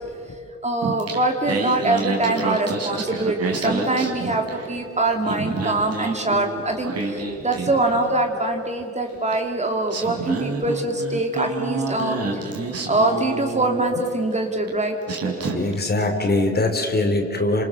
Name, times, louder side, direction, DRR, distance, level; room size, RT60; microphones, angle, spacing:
voice 1, 0.6-12.2 12.9-14.9, right 2 dB, 20° right, 3 dB, 2.8 m, -23 dB
Singing, 0.8-4.8 5.1-8.3 9.3-9.4 9.9-14.1 14.7-14.8 15.1-15.9, right 3 dB, 55° right, 5.1 m, -28 dB
voice 2, 15.5-17.6, left 2 dB, 30° left, 4 dB, 4.0 m, -22 dB
29.0 x 26.0 x 6.9 m, 2.6 s
cardioid pair, 90°, 30 cm